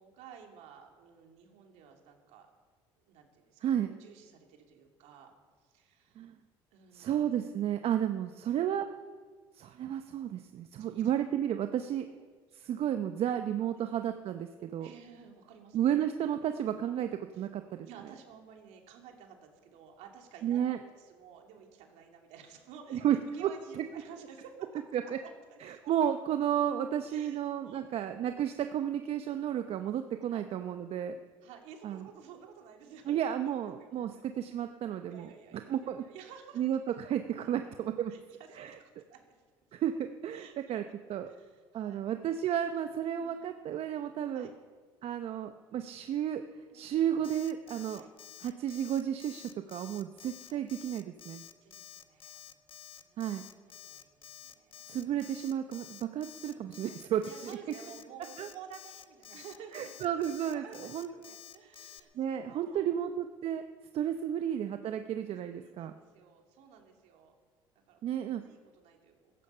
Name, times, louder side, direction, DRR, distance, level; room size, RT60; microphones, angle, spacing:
voice 1, 0.0-2.5 3.1-5.3 5.6-6.3 6.7-7.2 8.5-8.7 10.8-11.0 12.0-12.1 12.5-12.8 14.8-15.9 17.3-17.5 17.8-23.0 23.3-24.8 25.2-25.9 27.1-28.4 30.3-30.4 31.4-34.2 35.1-36.6 37.3-37.7 38.1-38.2 38.5-39.3 40.3-40.7 41.2-42.0 43.1-43.6 44.3-44.5 46.7-47.1 47.9-48.1 50.4-50.6 51.6-53.3 53.8-55.0 56.4-56.7 57.2-62.9 65.2-67.3 67.7-69.3, right 7 dB, 70° right, 2 dB, 2.7 m, -53 dB
voice 2, 6.9-8.9 9.5-12.1 12.5-14.9 15.7-17.9 20.4-20.8 22.9-23.5 23.8-23.9 24.9-25.0 25.6-31.2 31.8-32.0 33.1-35.3 35.7-36.0 36.6-38.1 38.6-38.8 39.7-40.8 41.1-41.3 41.7-44.5 45.0-46.4 46.7-48.0 48.4-51.4 53.2-53.4 54.9-57.6 58.4-58.5 59.7-61.1 62.1-63.6 63.9-65.9 68.0-68.4, right 10 dB, 55° right, 8 dB, 0.8 m, -32 dB
Alarm, 47.2-62.0, left 11 dB, 50° left, 1.0 m, -50 dB
15.5 x 14.0 x 5.6 m, 1.5 s
supercardioid pair, 80°, 12 cm